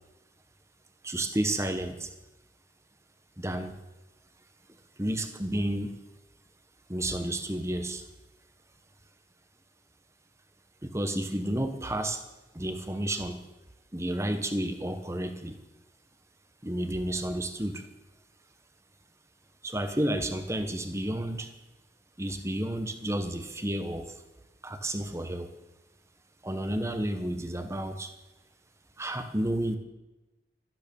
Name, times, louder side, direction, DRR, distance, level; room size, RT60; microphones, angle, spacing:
voice 1, 1.0-2.1 3.4-3.7 5.0-6.0 6.9-8.0 10.8-12.2 12.5-13.4 13.9-15.6 16.6-17.9 19.6-21.5 22.2-24.1 24.6-25.5 26.4-28.1 29.0-29.8, right 1 dB, 15° right, 8 dB, 1.3 m, -31 dB
13.5 x 12.0 x 7.1 m, 1.0 s
head